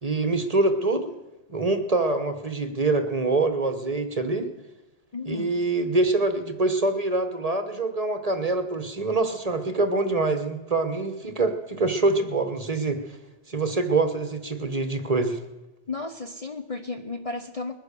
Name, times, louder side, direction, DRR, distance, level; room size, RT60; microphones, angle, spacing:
voice 1, 0.0-1.1 1.5-4.5 5.2-13.2 13.5-15.4, right 3 dB, 35° right, 8 dB, 1.0 m, -25 dB
voice 2, 5.1-5.6 15.9-17.7, left 3 dB, 35° left, 5 dB, 0.7 m, -34 dB
21.0 x 9.9 x 6.8 m, 1.1 s
omnidirectional pair, 1.2 m